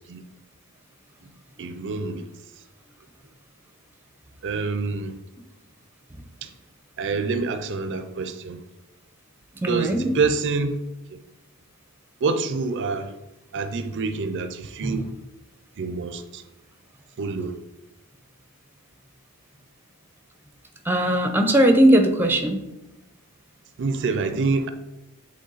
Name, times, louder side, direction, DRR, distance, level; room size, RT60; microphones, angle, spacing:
voice 1, 1.6-2.2 4.4-5.1 6.4-6.5 7.0-8.6 9.7-10.8 11.1-11.2 12.2-13.1 13.5-15.1 15.8-16.4 17.2-17.6 23.8-24.7, right 4 dB, 55° right, 0.5 m, -26 dB
voice 2, 9.5-10.2 14.8-15.0 20.8-22.6, right 1 dB, 10° right, 0.6 m, -19 dB
8.0 x 3.5 x 3.9 m
head